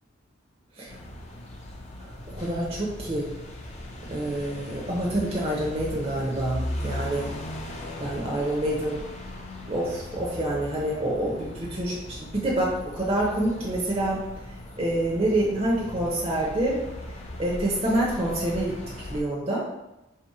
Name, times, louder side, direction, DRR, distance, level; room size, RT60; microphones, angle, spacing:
sound 1, 0.9-19.2, left 1 dB, 35° left, 0.5 m, -38 dB
voice 1, 2.0-3.3 4.1-7.3 8.0-9.0 9.7-14.2 14.8-16.8 17.4-19.6, right 1 dB, 30° right, -4 dB, 0.7 m, -27 dB
3.5 x 2.8 x 4.7 m, 0.94 s
head